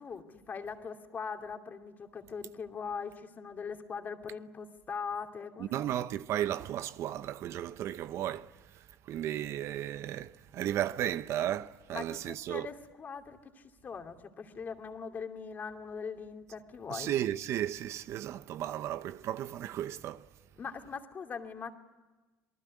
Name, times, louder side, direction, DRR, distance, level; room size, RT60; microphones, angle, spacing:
voice 1, 0.0-5.8 11.9-17.2 20.6-21.7, left 5 dB, 30° left, 2.7 m, -41 dB
voice 2, 5.6-12.7 16.9-20.3, right 11 dB, 55° right, 0.8 m, -34 dB
27.5 x 19.5 x 9.5 m
supercardioid pair, 105°, 6 cm